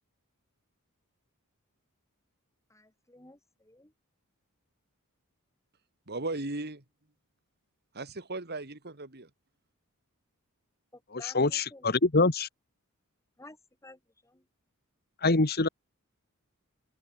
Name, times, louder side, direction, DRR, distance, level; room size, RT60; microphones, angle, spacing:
voice 1, 2.7-3.9 10.9-11.9 13.4-14.5, left 2 dB, 15° left, 5.3 m, -53 dB
voice 2, 6.1-6.8 7.9-9.3, right 2 dB, 50° right, 2.6 m, -36 dB
voice 3, 11.2-12.5 15.2-15.7, left 3 dB, 45° left, 1.6 m, -24 dB
head